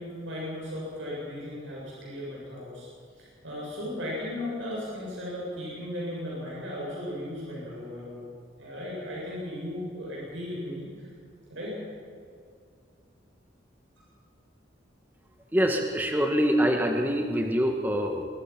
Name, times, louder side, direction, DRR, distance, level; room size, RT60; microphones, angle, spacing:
voice 1, 0.0-2.9 3.2-8.2 8.6-11.1 11.5-11.8, left 1 dB, 80° right, -5 dB, 7.6 m, -36 dB
voice 2, 15.5-18.2, equal, 10° right, 2 dB, 1.7 m, -25 dB
25.0 x 22.0 x 6.0 m, 2.4 s
head